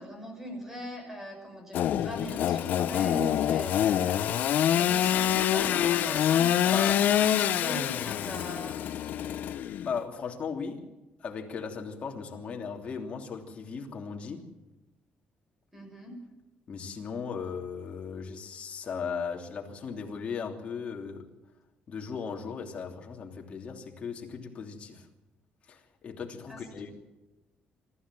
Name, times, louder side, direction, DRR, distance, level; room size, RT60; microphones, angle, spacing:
voice 1, 0.0-4.2 4.7-8.8 15.7-16.1 26.5-26.6, equal, 10° right, 6.5 m, -40 dB
Engine / Sawing, 1.7-10.0, left 10 dB, 70° left, 0.8 m, -26 dB
voice 2, 6.7-7.0 9.8-10.9 11.2-14.5 16.7-21.3 21.9-25.1 25.7-26.9, left 6 dB, 40° left, 3.0 m, -37 dB
25.0 x 14.0 x 7.6 m
cardioid pair, 140°, 3 cm